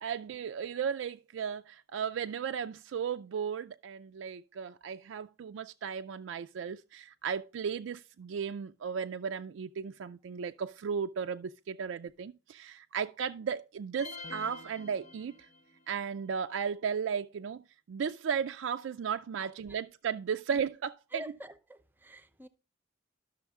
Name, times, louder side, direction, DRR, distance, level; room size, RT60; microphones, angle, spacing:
voice 1, 0.0-15.5 15.9-17.6 17.9-21.2, right 7 dB, 75° right, 0.4 m, -35 dB
sound 1, 14.0-15.8, left 3 dB, 35° left, 0.6 m, -46 dB
voice 2, 19.4-19.8 20.5-20.6 21.1-22.5, equal, 10° right, 0.5 m, -48 dB
12.0 x 6.3 x 3.5 m
head